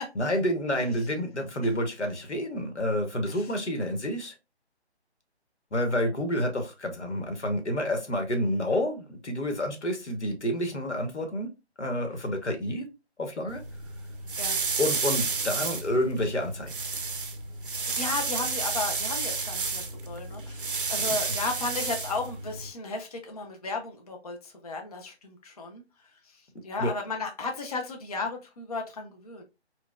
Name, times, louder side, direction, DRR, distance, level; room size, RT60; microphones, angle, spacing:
voice 1, 0.1-4.3 5.7-11.5 11.8-12.9 13.2-13.6 14.8-16.7 26.8-26.9, equal, 90° left, 1.0 m, -29 dB
sound 1, 13.5-22.7, right 4 dB, 50° right, 0.5 m, -31 dB
voice 2, 17.8-25.8 26.6-29.4, left 3 dB, 35° left, 0.4 m, -34 dB
4.0 x 2.3 x 2.3 m
figure-of-eight pair, 150°, 34 cm